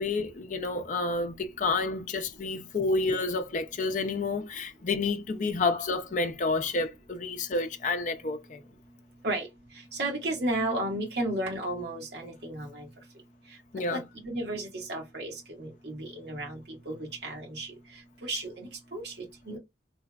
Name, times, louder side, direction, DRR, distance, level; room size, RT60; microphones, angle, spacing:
voice 1, 0.0-8.6 13.7-14.0, left 3 dB, 45° left, 0.5 m, -29 dB
voice 2, 9.9-12.9 13.9-17.7 18.2-19.1 19.5-19.6, right 1 dB, 70° right, 1.5 m, -33 dB
3.3 x 3.0 x 2.3 m
head